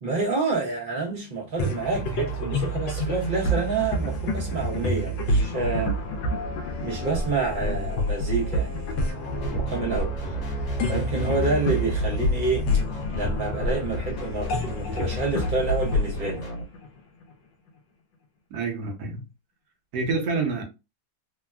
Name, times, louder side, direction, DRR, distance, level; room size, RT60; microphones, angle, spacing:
voice 1, 0.0-5.9 6.8-10.1 10.9-12.7 13.1-16.4, right 3 dB, 40° right, 0.8 m, -28 dB
sound 1, 1.6-17.2, equal, 75° left, 1.2 m, -28 dB
sound 2, 5.1-10.6, left 3 dB, 35° left, 0.8 m, -42 dB
sound 3, 9.2-16.6, left 2 dB, 50° left, 1.6 m, -34 dB
voice 2, 18.5-19.3 19.9-20.6, right 4 dB, 65° right, 1.3 m, -28 dB
3.6 x 2.2 x 2.3 m
omnidirectional pair, 2.1 m